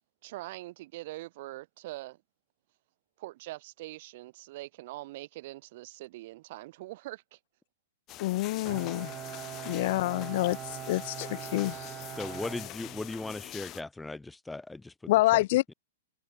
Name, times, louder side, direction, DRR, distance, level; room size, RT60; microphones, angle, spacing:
voice 1, 0.2-2.2 3.2-7.4, right 18 dB, 50° right, 3.3 m, -43 dB
sound 1, 8.1-13.8, left 16 dB, 30° left, 1.3 m, -44 dB
voice 2, 8.2-9.1 9.7-12.0 15.1-15.7, left 18 dB, 50° left, 0.4 m, -27 dB
Bowed string instrument, 8.6-13.5, right 13 dB, 30° right, 1.3 m, -42 dB
voice 3, 12.1-15.4, left 2 dB, 5° left, 0.7 m, -38 dB
figure-of-eight pair, 110°, 0 cm